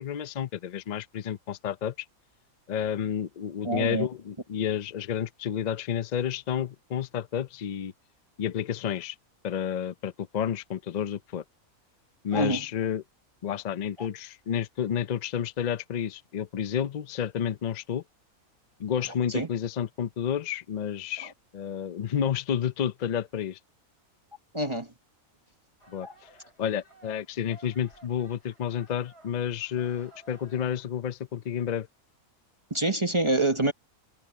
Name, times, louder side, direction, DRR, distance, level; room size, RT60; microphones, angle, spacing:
voice 1, 0.0-2.1 2.7-7.9 8.4-9.2 9.4-11.4 12.2-13.0 13.4-18.0 18.8-23.6 25.9-26.3 26.6-31.9, left 9 dB, 70° left, 0.4 m, -30 dB
voice 2, 3.6-4.1 12.3-12.6 14.0-14.1 19.3-19.5 24.5-24.9 26.0-26.1 32.7-33.7, right 2 dB, 20° right, 1.1 m, -26 dB
sound 1, 25.8-30.8, right 1 dB, 50° left, 7.6 m, -56 dB
omnidirectional pair, 1.5 m